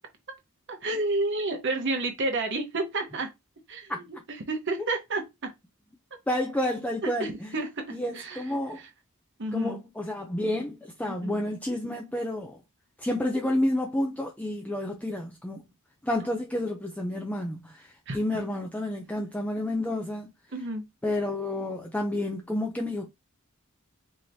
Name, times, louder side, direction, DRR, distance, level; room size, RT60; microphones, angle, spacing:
voice 1, 0.7-3.3 3.7-3.9 4.4-5.5 7.0-8.4 8.7-8.9 9.4-9.8 11.1-11.4 18.1-18.4 20.5-20.8, right 2 dB, 55° right, 1.0 m, -30 dB
voice 2, 6.3-7.5 7.9-8.8 9.5-12.6 13.0-15.6 16.0-20.3 21.0-23.1, left 1 dB, 5° left, 0.4 m, -30 dB
4.7 x 2.9 x 2.7 m
head